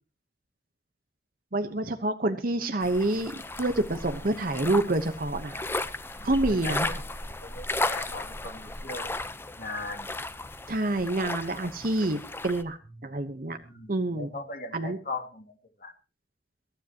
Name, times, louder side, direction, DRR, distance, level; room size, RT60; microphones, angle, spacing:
voice 1, 1.5-5.7 6.2-7.0 10.7-13.6 13.9-14.3 14.7-15.0, right 2 dB, 50° right, 8 dB, 1.1 m, -28 dB
sound 1, 2.8-12.6, left 2 dB, 15° left, 0.8 m, -35 dB
voice 2, 6.6-7.0 7.4-9.1 9.6-10.1 13.6-15.5 15.8-15.9, left 2 dB, 55° left, 3 dB, 2.7 m, -39 dB
23.0 x 12.0 x 3.0 m, 0.32 s
head